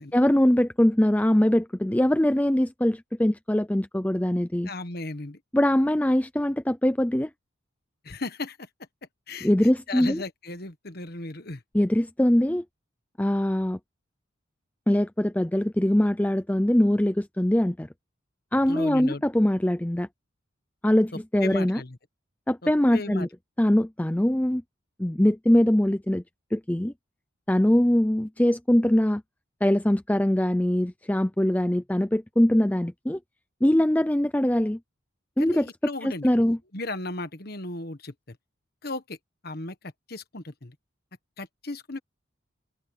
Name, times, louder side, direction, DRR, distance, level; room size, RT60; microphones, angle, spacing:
voice 1, 0.1-4.7 5.5-7.3 9.4-10.2 11.7-12.6 13.2-13.8 14.9-17.9 18.5-20.1 20.8-21.8 22.5-23.3 23.6-24.6 25.0-26.2 26.5-26.9 27.5-29.2 29.6-33.2 33.6-34.8 35.4-35.7 36.0-36.6, left 1 dB, 5° left, 0.4 m, -22 dB
voice 2, 4.6-5.4 8.0-8.7 9.3-11.6 18.7-19.2 21.1-22.0 22.6-23.3 35.4-38.4 38.8-39.2 39.4-40.7 41.4-42.0, left 2 dB, 50° left, 1.4 m, -36 dB
open air
head